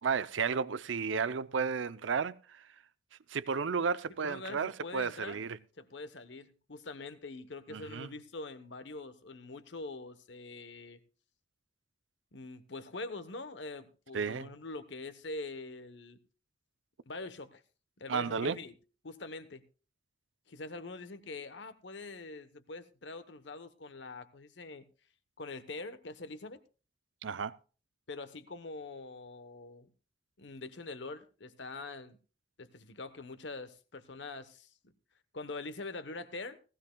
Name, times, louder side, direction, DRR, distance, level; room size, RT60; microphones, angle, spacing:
voice 1, 0.0-2.7 3.3-5.6 7.7-8.1 14.1-14.5 18.1-18.6 27.2-27.6, right 5 dB, 85° right, 0.6 m, -33 dB
voice 2, 4.2-5.4 5.8-11.0 12.3-16.2 17.1-17.6 18.0-18.7 19.0-19.6 20.5-24.9 25.4-26.6 28.1-29.9 30.4-32.2 32.6-34.7 35.3-36.6, left 3 dB, 70° left, 1.0 m, -44 dB
18.0 x 15.5 x 2.3 m
head